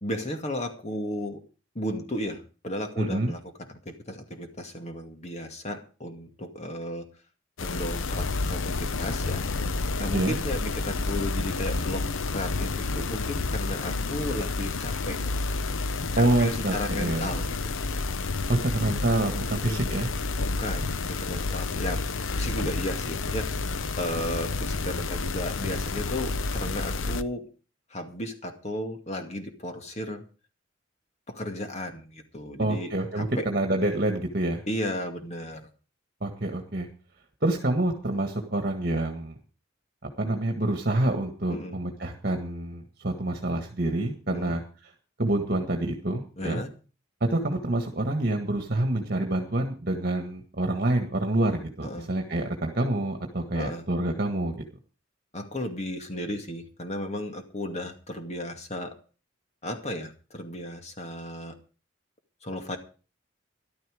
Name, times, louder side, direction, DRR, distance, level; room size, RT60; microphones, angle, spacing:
voice 1, 0.0-1.4 1.7-3.4 3.7-7.1 7.6-9.4 10.0-15.2 16.1-17.8 19.5-19.9 20.4-23.5 23.9-27.5 27.9-30.2 31.3-33.5 34.7-35.6 41.5-41.8 44.3-44.6 46.4-46.7 51.8-52.1 53.5-53.8 55.3-58.9 59.6-61.5 62.4-62.8, left 1 dB, 35° left, 6 dB, 2.3 m, -34 dB
voice 2, 3.0-3.3 10.1-10.3 16.2-17.3 18.5-20.1 32.6-34.6 36.2-36.9 37.4-39.4 40.2-44.9 45.2-46.6 47.2-54.6, right 1 dB, 50° right, 4 dB, 1.8 m, -27 dB
sound 1, 7.6-27.2, left 3 dB, 90° left, 0.8 m, -30 dB
14.0 x 12.0 x 5.0 m, 0.36 s
head